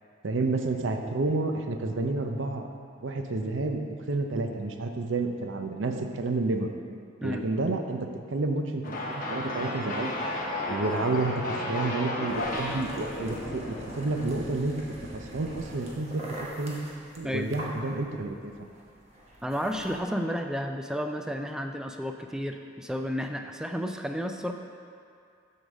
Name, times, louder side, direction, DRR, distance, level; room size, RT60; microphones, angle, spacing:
voice 1, 0.2-2.7 3.0-6.7 7.2-8.0 8.3-10.1 10.7-14.7 15.1-16.2 16.6-16.8 17.2-18.5, right 3 dB, 75° right, 5 dB, 0.6 m, -30 dB
sound 1, 8.8-14.3, left 1 dB, 45° left, 0.9 m, -33 dB
sound 2, 12.3-20.0, right 1 dB, 35° right, 1.1 m, -43 dB
voice 2, 19.4-24.5, equal, 5° right, 4 dB, 0.3 m, -32 dB
7.9 x 3.8 x 6.3 m, 2.4 s
head